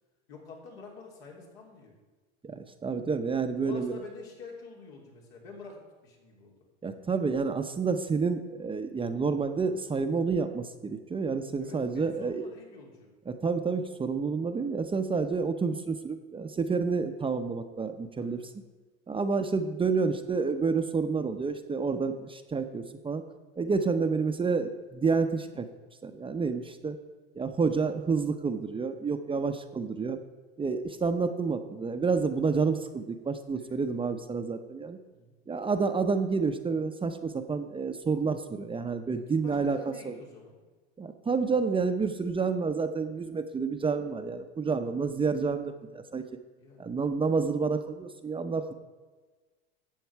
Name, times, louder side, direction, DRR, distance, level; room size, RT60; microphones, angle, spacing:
voice 1, 0.3-2.0 3.6-6.6 11.6-13.1 18.2-18.5 33.5-33.8 35.1-35.4 39.1-40.6 44.8-45.1 46.6-46.9, left 4 dB, 75° left, -1 dB, 3.1 m, -47 dB
voice 2, 2.4-4.0 6.8-12.5 13.3-18.4 19.1-23.2 23.6-25.7 26.0-27.0 27.4-30.2 30.6-35.0 35.5-39.8 40.1-40.2 41.0-46.2 46.8-48.7, right 4 dB, 15° right, 8 dB, 0.7 m, -29 dB
12.0 x 7.9 x 4.6 m, 1.3 s
hypercardioid pair, 100°, 31 cm